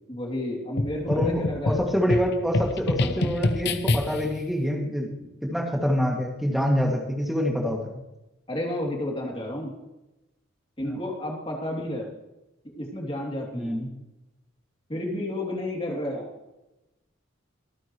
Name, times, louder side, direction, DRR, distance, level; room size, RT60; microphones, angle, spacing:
voice 1, 0.1-1.8 2.9-3.3 8.5-9.7 10.8-12.1 12.7-13.8 14.9-16.3, left 1 dB, 25° left, -1 dB, 2.9 m, -31 dB
sound 1, 0.8-4.4, left 2 dB, 55° left, 0.8 m, -27 dB
voice 2, 1.1-5.1 5.4-7.8 10.8-11.0 13.5-13.9, equal, ahead, 0 dB, 2.2 m, -26 dB
24.5 x 9.1 x 3.1 m, 0.96 s
head